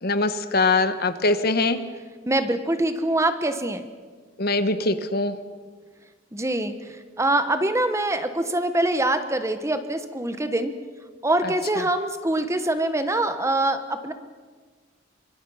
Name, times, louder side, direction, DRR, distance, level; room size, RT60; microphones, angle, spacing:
voice 1, 0.0-1.8 4.4-5.3 11.4-11.8, left 3 dB, 55° left, 10 dB, 1.2 m, -23 dB
voice 2, 2.3-3.9 6.3-6.7 7.2-10.7 11.2-14.1, right 1 dB, 15° right, 9 dB, 1.2 m, -24 dB
25.0 x 23.5 x 5.6 m, 1.5 s
head